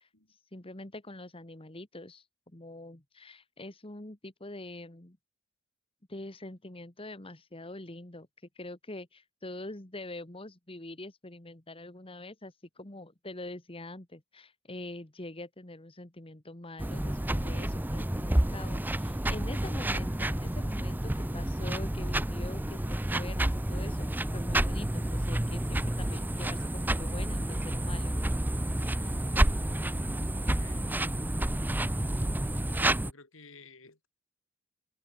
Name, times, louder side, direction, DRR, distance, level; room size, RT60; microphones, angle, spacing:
voice 1, 0.0-5.2 6.1-8.3 8.6-28.2, left 2 dB, 25° left, 1.9 m, -44 dB
sound 1, 16.8-33.1, right 1 dB, 10° right, 0.6 m, -30 dB
voice 2, 29.0-29.9 30.2-30.9 32.9-34.1, left 3 dB, 65° left, 4.2 m, -55 dB
open air
head